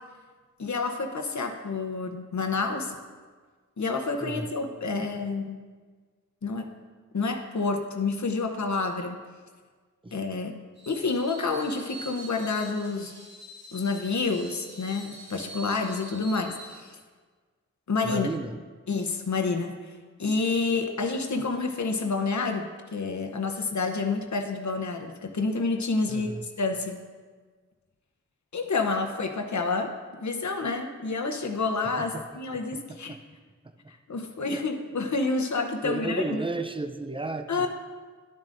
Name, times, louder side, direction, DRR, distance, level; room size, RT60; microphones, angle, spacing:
voice 1, 0.6-3.0 3.8-5.6 6.4-6.7 7.1-9.2 10.1-10.5 10.9-13.1 13.7-17.0 17.9-18.3 18.9-19.7 20.2-27.0 28.5-29.9 30.2-33.2 33.9-36.4 37.5-37.7, left 3 dB, 70° left, 4 dB, 0.9 m, -29 dB
Screech, 10.8-16.8, right 1 dB, 60° right, 2.3 m, -45 dB
voice 2, 18.0-18.6 26.1-26.5 32.0-32.2 33.1-33.2 34.5-34.6 35.8-37.7, right 2 dB, 15° right, 7 dB, 0.5 m, -33 dB
11.0 x 7.5 x 2.6 m, 1.5 s
wide cardioid pair, 65°, 30 cm